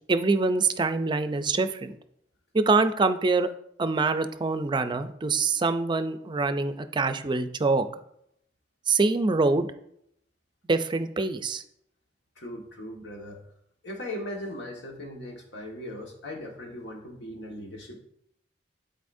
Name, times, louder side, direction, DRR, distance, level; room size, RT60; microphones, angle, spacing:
voice 1, 0.1-1.9 2.5-3.5 3.8-7.9 8.9-9.7 10.7-11.6, right 3 dB, 25° right, 10 dB, 0.4 m, -25 dB
voice 2, 12.4-13.4 13.8-18.0, left 1 dB, 85° left, 0 dB, 1.5 m, -38 dB
11.5 x 4.2 x 2.6 m, 0.73 s
head